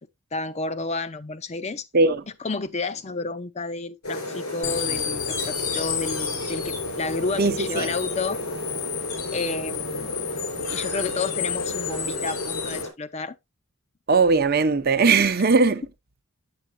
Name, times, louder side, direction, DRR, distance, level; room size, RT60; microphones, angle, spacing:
voice 1, 0.3-1.8 2.4-8.4 9.3-10.2 10.7-13.4, left 3 dB, 30° left, 0.5 m, -31 dB
sound 1, 4.0-12.9, left 1 dB, 85° left, 4.4 m, -32 dB
sound 2, 4.6-12.8, left 9 dB, 55° left, 1.0 m, -32 dB
voice 2, 7.4-7.9 14.1-15.8, right 4 dB, 45° right, 0.7 m, -19 dB
8.7 x 7.9 x 2.6 m
head